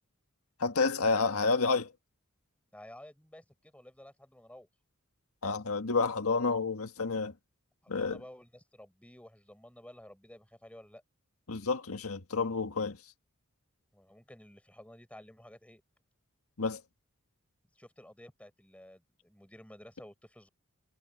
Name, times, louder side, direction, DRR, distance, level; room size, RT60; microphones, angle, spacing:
voice 1, 0.6-1.9 5.4-7.3 7.9-8.2 11.5-13.0 16.6-16.8, left 4 dB, 85° left, 1.6 m, -29 dB
voice 2, 2.7-4.7 7.8-11.0 13.9-15.8 17.8-20.5, left 1 dB, 5° left, 5.2 m, -53 dB
head